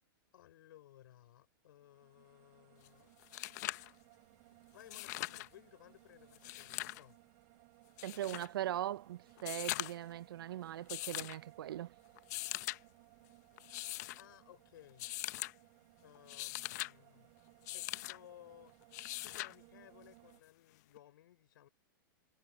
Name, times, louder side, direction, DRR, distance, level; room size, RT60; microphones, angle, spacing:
voice 1, 0.3-3.1 4.7-7.2 14.2-15.1 16.0-17.3 17.7-18.7 19.2-21.7, left 13 dB, 70° left, 5.6 m, -59 dB
sound 1, 1.7-20.4, right 30 dB, 45° right, 4.3 m, -64 dB
sound 2, 2.8-2.9 3.2-3.9 4.8-5.5 6.3-7.0 8.0-8.5 9.4-10.1 10.9-11.4 12.2-12.8 13.6-14.2 15.0-15.5 16.1-16.9 17.7-18.2 18.9-19.5 21.0-21.1, left 19 dB, 50° left, 0.7 m, -41 dB
voice 2, 8.0-11.9, right 12 dB, 85° right, 0.4 m, -40 dB
supercardioid pair, 150°, 12 cm